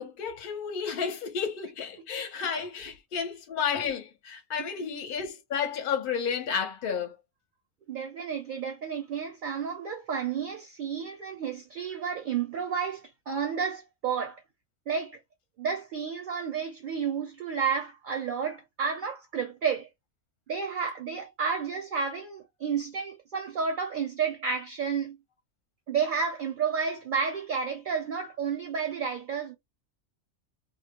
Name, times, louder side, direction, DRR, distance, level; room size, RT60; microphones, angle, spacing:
voice 1, 0.0-7.2, left 6 dB, 55° left, 0.8 m, -32 dB
voice 2, 4.6-4.9 7.9-14.4 14.9-15.2 15.6-19.9 20.5-25.2 25.9-29.5, right 6 dB, 60° right, 0.6 m, -31 dB
2.2 x 2.0 x 2.8 m
omnidirectional pair, 1.3 m